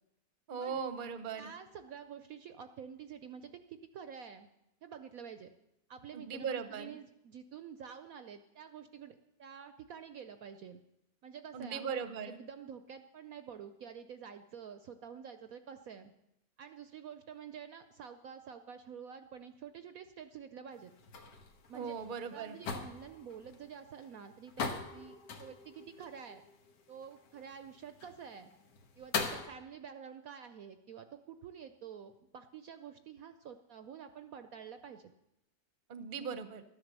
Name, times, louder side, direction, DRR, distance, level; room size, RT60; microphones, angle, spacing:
voice 1, 0.5-1.5 6.1-6.9 11.5-12.4 21.7-22.6 35.9-36.6, right 6 dB, 40° right, 10 dB, 0.8 m, -39 dB
voice 2, 1.3-4.5 4.8-5.5 5.9-10.8 11.2-16.1 16.6-20.9 21.7-21.9 22.3-26.4 26.9-28.5 29.0-35.1, right 7 dB, 65° right, 9 dB, 1.0 m, -49 dB
sound 1, 20.7-29.5, left 5 dB, 80° left, 1.9 m, -42 dB
13.0 x 10.5 x 6.6 m, 0.84 s
omnidirectional pair, 1.9 m